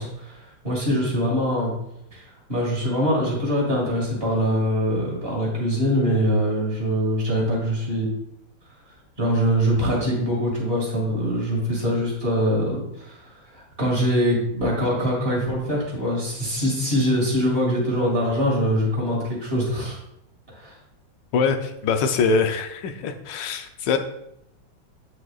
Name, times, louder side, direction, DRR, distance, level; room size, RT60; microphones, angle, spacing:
voice 1, 0.0-1.7 2.1-2.2 2.5-8.1 9.2-13.2 13.5-20.0 20.6-20.8, equal, 30° right, -3 dB, 2.3 m, -23 dB
voice 2, 21.3-24.0, left 5 dB, 70° left, 7 dB, 1.3 m, -23 dB
9.0 x 6.6 x 2.4 m, 0.78 s
omnidirectional pair, 2.2 m